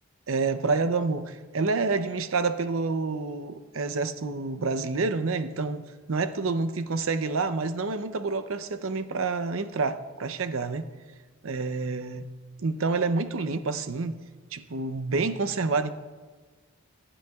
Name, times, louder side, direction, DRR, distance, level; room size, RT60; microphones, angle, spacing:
voice 1, 0.3-10.8 11.4-12.3 12.6-14.2 14.5-15.9, right 4 dB, 65° right, 0.6 m, -28 dB
23.5 x 10.0 x 2.4 m
head